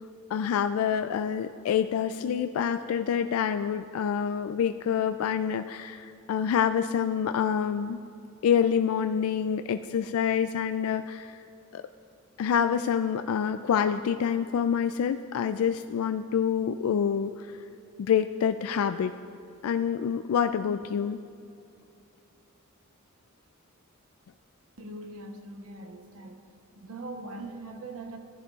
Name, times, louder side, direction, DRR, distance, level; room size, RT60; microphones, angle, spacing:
voice 1, 0.3-8.0 8.4-11.4 11.7-11.8 12.4-17.5 18.0-19.2 19.6-21.2, left 8 dB, 75° left, 10 dB, 0.3 m, -27 dB
voice 2, 24.8-26.4 26.7-28.2, right 2 dB, 75° right, 4 dB, 1.0 m, -41 dB
15.0 x 10.5 x 2.4 m, 2.6 s
head